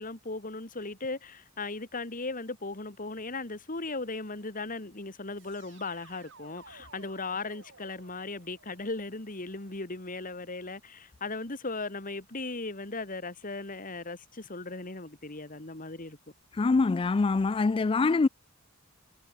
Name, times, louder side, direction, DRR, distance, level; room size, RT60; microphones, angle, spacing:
voice 1, 0.0-16.2, left 3 dB, 40° left, 2.4 m, -37 dB
sound 1, 5.4-10.3, right 4 dB, 60° right, 3.9 m, -56 dB
voice 2, 16.6-18.3, left 3 dB, 25° left, 0.3 m, -24 dB
head